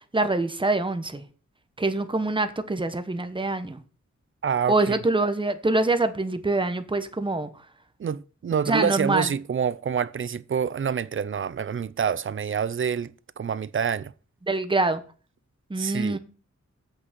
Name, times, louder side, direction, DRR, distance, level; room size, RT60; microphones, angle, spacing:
voice 1, 0.1-1.2 1.8-3.8 4.7-7.5 8.7-9.3 14.5-15.0 15.7-16.2, right 2 dB, 15° right, 1.0 m, -25 dB
voice 2, 4.4-5.0 8.0-14.1 15.8-16.2, right 7 dB, 45° right, 0.5 m, -27 dB
7.9 x 6.3 x 6.0 m
wide cardioid pair, 90°, 29 cm